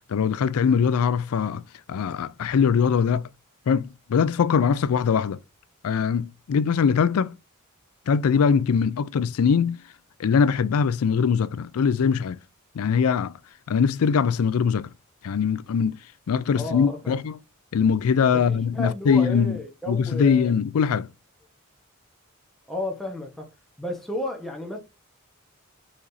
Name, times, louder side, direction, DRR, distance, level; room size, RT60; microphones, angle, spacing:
voice 1, 0.1-1.6 1.9-3.3 3.7-5.4 5.8-7.4 8.1-9.8 10.2-12.4 12.7-13.3 13.7-14.9 15.2-16.0 16.3-17.4 17.7-19.6 19.9-21.1, left 6 dB, 80° left, 0.4 m, -22 dB
voice 2, 16.5-17.1 18.5-20.5 22.7-23.5 23.8-24.8, left 1 dB, ahead, 1.1 m, -32 dB
4.9 x 4.1 x 2.6 m
head